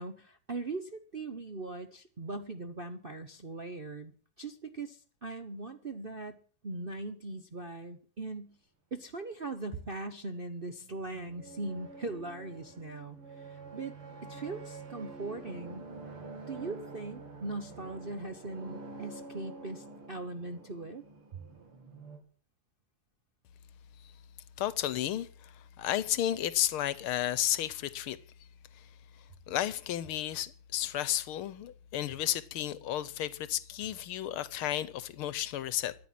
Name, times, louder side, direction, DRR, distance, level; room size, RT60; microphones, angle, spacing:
voice 1, 0.0-4.1 4.4-6.4 6.6-8.6 8.9-13.9 14.2-15.8 16.5-21.0 21.3-21.4, right 2 dB, 40° right, 0.7 m, -40 dB
sound 1, 10.5-22.2, right 3 dB, 85° right, 3.6 m, -47 dB
voice 2, 24.6-28.2 28.7-36.0, left 12 dB, 80° left, 1.7 m, -33 dB
13.5 x 10.5 x 7.6 m
omnidirectional pair, 2.4 m